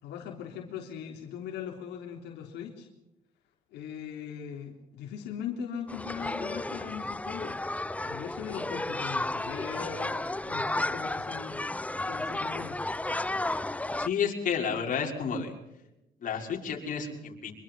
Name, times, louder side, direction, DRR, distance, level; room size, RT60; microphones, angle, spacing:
voice 1, 0.0-2.9 3.7-7.6 8.0-11.6 12.1-12.8, left 8 dB, 85° left, 1 dB, 3.6 m, -40 dB
sound 1, 5.9-14.1, left 2 dB, 10° left, 0.7 m, -33 dB
voice 2, 14.0-15.5 16.2-17.5, left 6 dB, 50° left, 0 dB, 6.1 m, -31 dB
25.5 x 23.0 x 5.7 m, 0.93 s
cardioid pair, 110°, 17 cm